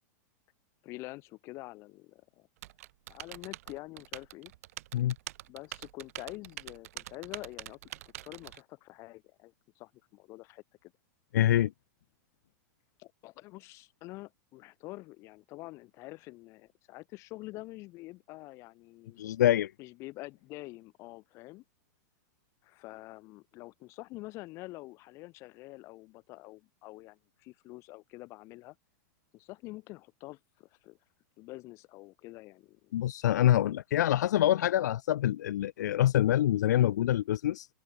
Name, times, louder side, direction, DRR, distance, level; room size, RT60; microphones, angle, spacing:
voice 1, 0.8-2.5 3.1-4.5 5.5-7.8 8.2-10.9 13.0-19.2 19.8-21.6 22.6-28.8 29.3-31.0 31.4-32.9, left 20 dB, 30° left, 5.8 m, -46 dB
Typing, 2.6-8.6, right 16 dB, 55° right, 2.9 m, -45 dB
voice 2, 11.3-11.7 19.2-19.7 32.9-37.7, left 12 dB, 80° left, 0.8 m, -25 dB
supercardioid pair, 170°, 9 cm